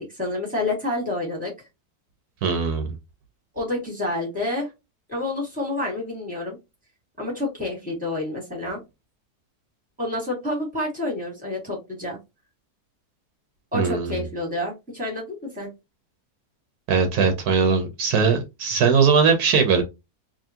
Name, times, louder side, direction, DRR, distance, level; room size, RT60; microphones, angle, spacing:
voice 1, 0.0-1.5 3.5-4.7 5.1-6.6 7.2-8.8 10.0-12.2 13.7-15.7, left 2 dB, 5° right, -1 dB, 1.8 m, -28 dB
voice 2, 2.4-2.9 13.7-14.2 16.9-19.8, right 5 dB, 75° right, 6 dB, 1.3 m, -20 dB
3.6 x 2.8 x 2.7 m, 0.23 s
omnidirectional pair, 1.7 m